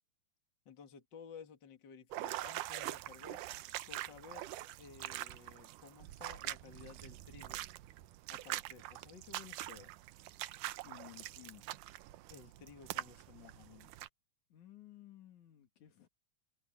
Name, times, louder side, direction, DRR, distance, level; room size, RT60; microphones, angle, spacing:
voice 1, 0.7-3.4 3.9-7.6 8.3-9.9 12.3-13.9, left 6 dB, 40° left, 2.3 m, -55 dB
sound 1, 2.1-14.1, right 15 dB, 85° right, 2.3 m, -44 dB
voice 2, 10.8-11.7 14.5-16.1, left 13 dB, 70° left, 3.3 m, -56 dB
omnidirectional pair, 3.6 m